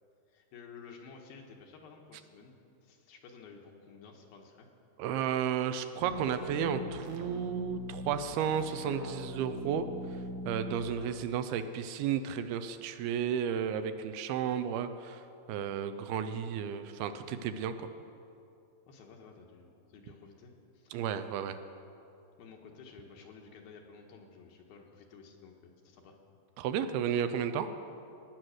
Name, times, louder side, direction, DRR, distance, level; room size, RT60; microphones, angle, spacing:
voice 1, 0.3-2.5 2.8-4.7 10.7-11.1 18.9-21.0 22.4-26.2, left 5 dB, 75° left, 1 dB, 2.8 m, -53 dB
voice 2, 5.0-15.2 15.5-17.9 20.9-21.6 26.6-27.7, right 8 dB, 80° right, 10 dB, 2.5 m, -33 dB
sound 1, 6.0-10.8, equal, 65° right, 1.9 m, -41 dB
18.0 x 9.3 x 6.4 m, 2.7 s
omnidirectional pair, 4.6 m